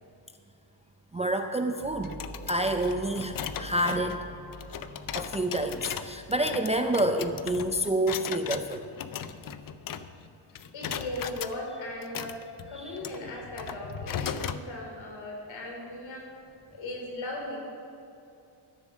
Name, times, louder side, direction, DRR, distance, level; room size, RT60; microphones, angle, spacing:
voice 1, 1.1-2.2 2.5-4.2 5.1-8.9, right 1 dB, 15° right, 5 dB, 0.4 m, -28 dB
sound 1, 1.8-8.3, equal, 25° left, 2.5 m, -47 dB
sound 2, 2.0-10.3 10.6-11.6 12.0-14.6, left 8 dB, 45° left, 0.5 m, -37 dB
voice 2, 10.7-12.4 12.7-16.4 16.7-17.6, left 1 dB, 70° left, -1 dB, 3.5 m, -38 dB
13.5 x 7.4 x 6.3 m, 2.7 s
cardioid pair, 120°, 48 cm